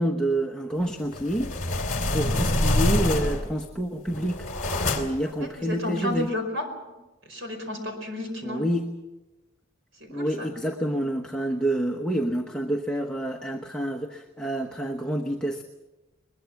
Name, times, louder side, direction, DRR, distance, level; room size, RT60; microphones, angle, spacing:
voice 1, 0.0-1.5 2.1-4.5 4.9-6.3 8.4-8.9 10.1-15.6, right 1 dB, 5° left, 2 dB, 1.0 m, -28 dB
sound 1, 1.1-3.6 4.1-5.3, left 1 dB, 35° left, 2.5 m, -26 dB
voice 2, 5.4-6.7 7.2-8.6 10.0-10.5, left 2 dB, 65° right, 5 dB, 5.0 m, -32 dB
22.0 x 21.5 x 7.1 m, 1.1 s
head